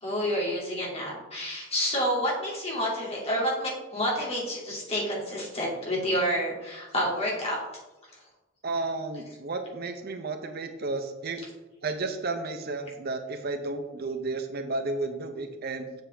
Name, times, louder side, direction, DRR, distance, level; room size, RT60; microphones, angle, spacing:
voice 1, 0.0-7.6, equal, 35° left, -4 dB, 2.5 m, -29 dB
voice 2, 8.6-11.5 11.8-15.9, right 3 dB, 55° right, 7 dB, 0.7 m, -32 dB
7.3 x 7.3 x 3.4 m, 1.0 s
head